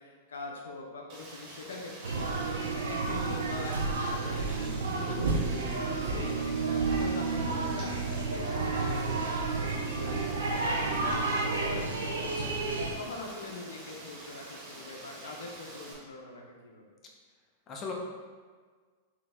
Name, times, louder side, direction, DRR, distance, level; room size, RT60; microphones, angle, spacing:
voice 1, 0.0-7.9 8.3-16.9, left 2 dB, 85° left, 0 dB, 0.6 m, -43 dB
Rain, 1.1-15.9, right 2 dB, 50° right, 1.3 m, -47 dB
sound 1, 2.0-12.9, right 3 dB, 85° right, 0.5 m, -31 dB
voice 2, 5.1-5.3 12.4-12.5 17.7-17.9, left 4 dB, 30° left, -1 dB, 0.7 m, -39 dB
3.9 x 2.8 x 3.4 m, 1.5 s
hypercardioid pair, 110°, 0 cm